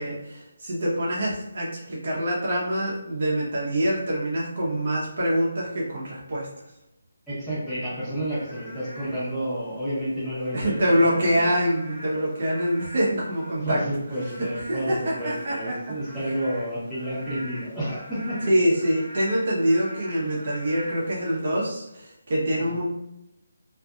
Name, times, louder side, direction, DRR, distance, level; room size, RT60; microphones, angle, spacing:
voice 1, 0.0-6.5 10.5-13.8 14.4-15.7 18.4-22.9, equal, 55° right, -5 dB, 0.8 m, -25 dB
voice 2, 7.3-11.5 12.1-12.2 13.6-18.4 22.6-22.7, right 1 dB, 5° left, -14 dB, 1.0 m, -30 dB
Frog / Rain, 8.2-21.7, equal, 25° left, 0.9 m, -44 dB
2.5 x 2.5 x 2.3 m, 0.87 s
figure-of-eight pair, 160°, 0 cm